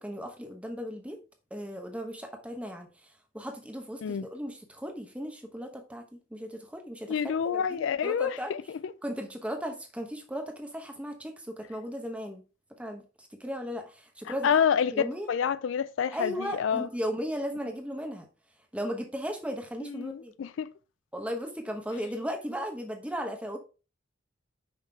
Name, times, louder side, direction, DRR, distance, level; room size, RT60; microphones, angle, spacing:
voice 1, 0.0-1.2 1.5-2.9 3.3-6.0 6.3-7.2 7.4-8.5 9.0-12.4 12.8-14.6 14.9-15.3 16.1-18.3 18.7-20.3 21.1-23.6, equal, 5° right, 0.9 m, -36 dB
voice 2, 7.1-8.9 14.4-14.9 15.3-16.9 19.8-20.7, left 7 dB, 65° left, 0.3 m, -28 dB
5.7 x 5.1 x 3.4 m
head